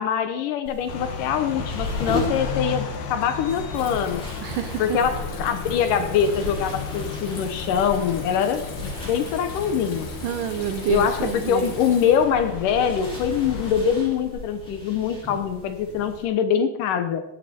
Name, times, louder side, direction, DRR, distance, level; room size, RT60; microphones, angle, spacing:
voice 1, 0.0-4.2 4.8-10.1 10.9-17.2, left 8 dB, 70° left, 9 dB, 2.2 m, -24 dB
sound 1, 0.6-16.2, left 1 dB, ahead, 4.6 m, -37 dB
sound 2, 0.9-13.7, left 6 dB, 90° left, 3.4 m, -35 dB
Water tap faucet / Sink (filling or washing), 1.8-14.4, left 3 dB, 55° left, 4.2 m, -39 dB
voice 2, 4.4-5.0 10.2-11.8, right 9 dB, 80° right, 9 dB, 1.9 m, -28 dB
18.0 x 11.0 x 4.3 m, 0.92 s
omnidirectional pair, 4.3 m